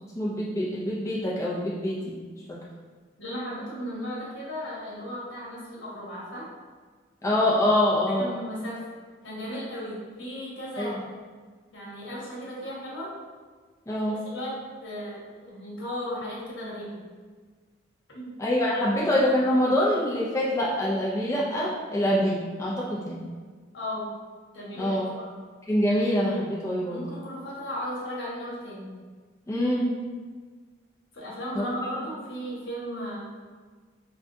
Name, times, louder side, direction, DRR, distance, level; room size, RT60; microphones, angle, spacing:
voice 1, 0.2-2.2 2.5-2.6 7.2-8.3 10.8-10.9 13.9-14.1 18.4-23.2 24.8-25.1 25.7-27.0 29.5-30.0 31.5-31.6, left 1 dB, 15° left, -6 dB, 0.4 m, -25 dB
voice 2, 3.2-6.5 8.1-8.8 9.2-11.2 11.7-13.1 14.2-17.0 18.1-18.3 23.7-24.1 24.5-25.3 26.9-28.9 31.1-33.2, equal, 70° left, -6 dB, 1.1 m, -35 dB
4.7 x 2.2 x 2.6 m, 1.5 s
head